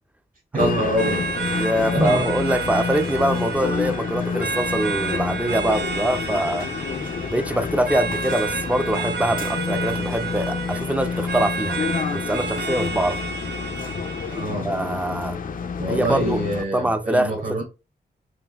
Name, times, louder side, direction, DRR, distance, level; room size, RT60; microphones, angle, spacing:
voice 1, 0.5-1.3 1.9-2.3 14.3-14.7 15.8-17.6, right 1 dB, 55° right, 2.5 m, -25 dB
sound 1, 0.6-16.6, left 5 dB, 50° left, 0.4 m, -29 dB
sound 2, 1.0-14.6, right 5 dB, 75° right, 0.5 m, -31 dB
voice 2, 1.6-6.7 7.3-11.8 12.1-13.2 14.6-15.4 15.9-16.4 16.7-17.6, right 1 dB, 10° right, 0.4 m, -24 dB
5.8 x 2.6 x 2.2 m
wide cardioid pair, 100°, 17 cm